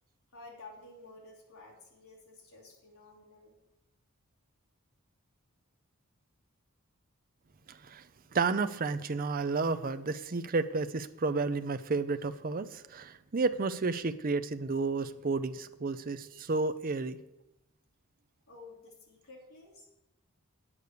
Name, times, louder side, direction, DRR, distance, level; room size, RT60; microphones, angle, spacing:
voice 1, 0.3-3.6 18.5-19.8, left 3 dB, 75° left, -2 dB, 2.9 m, -52 dB
voice 2, 7.7-8.0 8.3-17.2, right 4 dB, 40° right, 11 dB, 0.5 m, -31 dB
9.5 x 8.6 x 6.7 m, 0.89 s
head